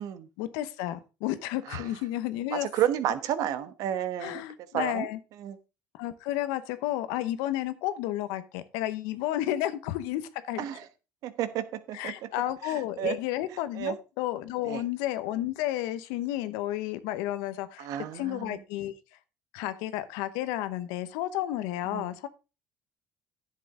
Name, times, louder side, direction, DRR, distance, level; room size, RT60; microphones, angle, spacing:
voice 1, 0.4-2.7 4.2-5.2 5.9-10.6 11.9-17.9 18.1-18.9 19.5-22.3, left 14 dB, 90° left, 13 dB, 0.9 m, -32 dB
voice 2, 2.5-4.4 4.7-5.1 5.4-5.6 10.6-10.8 11.2-12.1 13.0-13.2 13.8-13.9 14.7-14.8 17.8-18.6 21.9-22.1, right 10 dB, 70° right, 12 dB, 1.2 m, -31 dB
10.5 x 7.6 x 3.7 m, 0.30 s
supercardioid pair, 95°, 6 cm